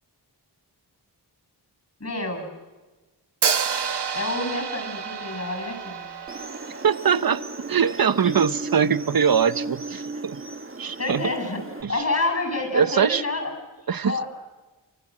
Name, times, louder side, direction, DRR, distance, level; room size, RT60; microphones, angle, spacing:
voice 1, 2.0-2.5 4.1-6.1 11.0-11.6 11.9-13.5 14.0-14.3, left 2 dB, 40° left, 6 dB, 7.7 m, -28 dB
Hi-hat, 3.4-7.4, right 6 dB, 75° right, 1.4 m, -29 dB
sound 1, 6.3-11.8, right 2 dB, 30° right, 1.6 m, -35 dB
voice 2, 6.8-10.4 10.8-11.2 11.8-12.0 12.7-13.2 13.9-14.2, right 7 dB, 60° right, 14 dB, 1.0 m, -22 dB
28.0 x 24.0 x 7.8 m, 1.2 s
wide cardioid pair, 85°, 40 cm